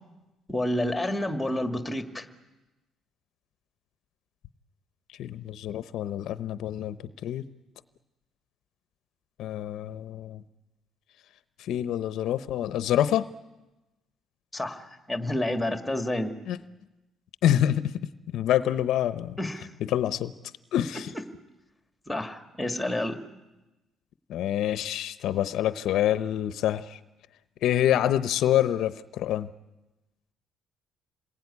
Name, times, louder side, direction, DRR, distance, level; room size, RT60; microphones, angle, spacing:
voice 1, 0.5-2.3 14.5-16.3 19.4-19.7 22.1-23.2, left 1 dB, 5° left, 8 dB, 1.8 m, -29 dB
voice 2, 5.2-7.0 7.2-7.4 9.4-10.4 11.6-13.3 16.5-16.6 17.4-17.9 18.3-19.4 19.8-20.3 20.7-21.1 24.3-27.0 27.6-29.5, left 11 dB, 65° left, 14 dB, 0.8 m, -26 dB
27.5 x 21.0 x 9.7 m, 1.0 s
cardioid pair, 165°, 0 cm